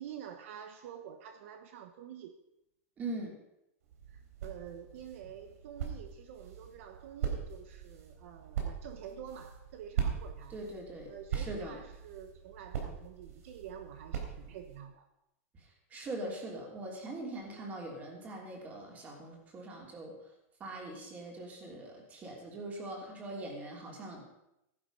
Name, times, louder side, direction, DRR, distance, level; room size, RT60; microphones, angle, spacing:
voice 1, 0.0-2.4 4.1-10.6 11.1-15.1, right 9 dB, 65° right, 7 dB, 1.2 m, -48 dB
voice 2, 3.0-3.4 10.5-11.8 15.6-20.1 20.6-24.2, right 2 dB, 20° right, 0 dB, 3.1 m, -42 dB
sound 1, 3.8-14.8, right 8 dB, 85° right, 3.8 m, -40 dB
14.5 x 11.0 x 5.5 m, 0.86 s
supercardioid pair, 165°, 8 cm